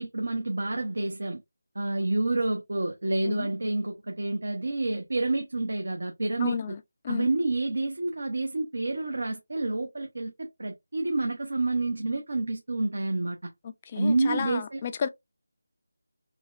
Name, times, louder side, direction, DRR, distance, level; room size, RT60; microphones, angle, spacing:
voice 1, 0.0-1.4 1.7-6.8 7.1-13.5 14.0-14.8, right 2 dB, 70° right, 0.8 m, -29 dB
voice 2, 6.4-6.8 7.0-7.3 13.9-15.1, left 7 dB, 20° left, 0.3 m, -31 dB
4.2 x 2.2 x 2.5 m
figure-of-eight pair, 170°, 0 cm